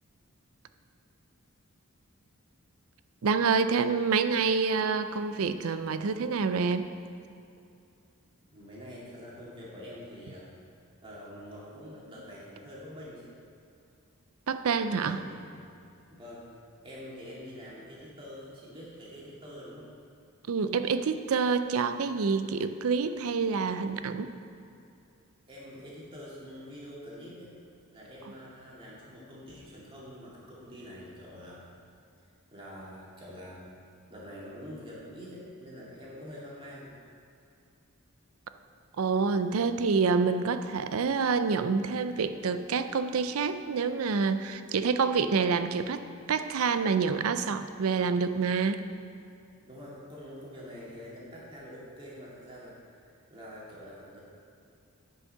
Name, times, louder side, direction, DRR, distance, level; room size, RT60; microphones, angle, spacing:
voice 1, 3.2-6.9 14.5-15.2 20.5-24.3 39.0-48.8, right 5 dB, 70° right, 10 dB, 0.5 m, -27 dB
voice 2, 8.5-10.5 11.0-13.3 14.7-15.4 16.1-16.5 16.8-19.9 25.5-27.5 27.9-31.6 32.2-33.7 34.1-36.9 39.2-39.5 49.6-54.2, equal, 25° right, -6 dB, 2.2 m, -46 dB
9.6 x 5.5 x 5.5 m, 2.6 s
head